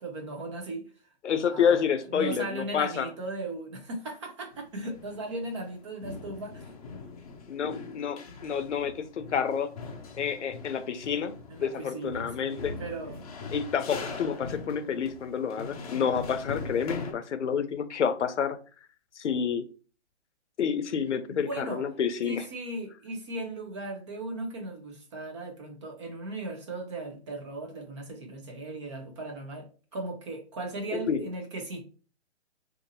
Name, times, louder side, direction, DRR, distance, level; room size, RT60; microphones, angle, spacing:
voice 1, 0.0-0.8 1.4-1.9 2.1-6.7 11.5-13.2 21.4-21.8 22.2-31.8, right 2 dB, 25° right, 0.6 m, -37 dB
voice 2, 1.2-3.1 7.5-9.7 10.1-12.8 13.5-18.6 19.2-19.6 20.6-22.5 30.9-31.3, left 7 dB, 90° left, 0.6 m, -29 dB
foot steps ste, 4.5-5.7 6.0-17.1, left 3 dB, 35° left, 0.5 m, -41 dB
2.6 x 2.6 x 2.6 m
hypercardioid pair, 150°, 34 cm